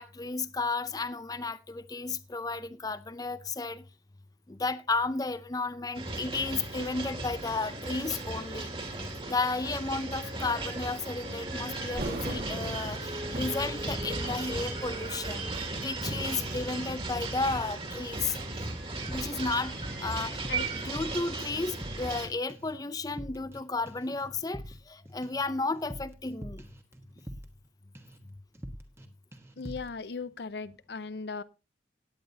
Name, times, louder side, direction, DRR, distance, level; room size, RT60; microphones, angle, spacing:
voice 1, 0.0-3.9 4.5-8.7 9.3-18.4 19.1-20.4 20.7-26.7, left 3 dB, 20° left, 0.5 m, -33 dB
sound 1, 5.9-22.3, right 2 dB, 30° right, 2.1 m, -36 dB
Thunder, 11.9-16.8 17.5-17.7 18.4-21.2 21.5-21.6, right 1 dB, 50° right, 1.8 m, -42 dB
sound 2, 19.1-20.0 20.3-22.2 22.5-22.8 23.1-23.6 23.9-27.7 27.9-28.2 28.5-29.1 29.3-29.9, equal, 15° right, 1.2 m, -44 dB
voice 2, 29.6-31.4, left 4 dB, 65° left, 0.6 m, -37 dB
17.5 x 9.1 x 2.7 m
head